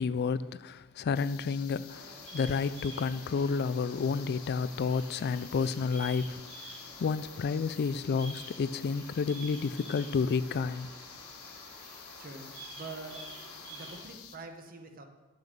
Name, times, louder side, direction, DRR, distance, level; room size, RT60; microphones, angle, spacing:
voice 1, 0.0-6.4 7.0-10.9, left 5 dB, 50° left, 0.3 m, -30 dB
sound 1, 1.1-14.4, left 9 dB, 70° left, 0.8 m, -50 dB
Bird vocalization bird call bird song, 1.9-14.0, right 2 dB, 80° right, 3.9 m, -49 dB
voice 2, 12.2-12.5 12.8-13.3 13.7-15.1, right 3 dB, 40° right, 1.0 m, -45 dB
8.8 x 6.6 x 6.7 m
head